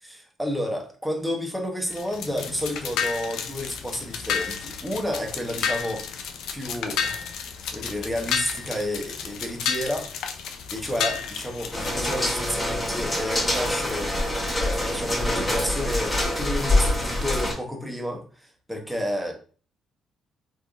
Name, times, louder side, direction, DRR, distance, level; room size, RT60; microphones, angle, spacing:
voice 1, 0.0-6.2 6.5-7.3 7.7-10.4 10.7-14.1 14.5-19.3, equal, 5° right, 0.9 m, -31 dB
sound 1, 1.9-12.3, left 7 dB, 85° left, 0.4 m, -31 dB
sound 2, 11.7-17.5, left 1 dB, 15° left, 1.2 m, -25 dB
3.4 x 2.6 x 2.3 m
cardioid pair, 90°, 0 cm